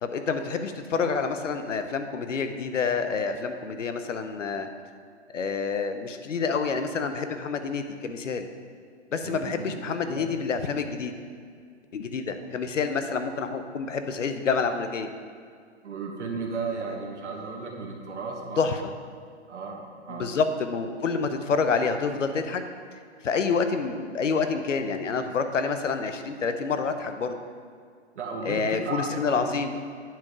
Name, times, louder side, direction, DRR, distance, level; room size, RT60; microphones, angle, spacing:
voice 1, 0.0-4.7 5.3-8.5 9.1-11.1 11.9-15.1 18.6-18.9 20.1-22.6 23.2-27.4 28.4-29.7, left 5 dB, 90° left, 8 dB, 0.9 m, -28 dB
voice 2, 9.2-10.3 15.8-18.6 19.5-20.3 28.1-29.5, right 4 dB, 70° right, 0 dB, 1.3 m, -35 dB
9.3 x 4.8 x 4.8 m, 2.1 s
hypercardioid pair, 150°, 36 cm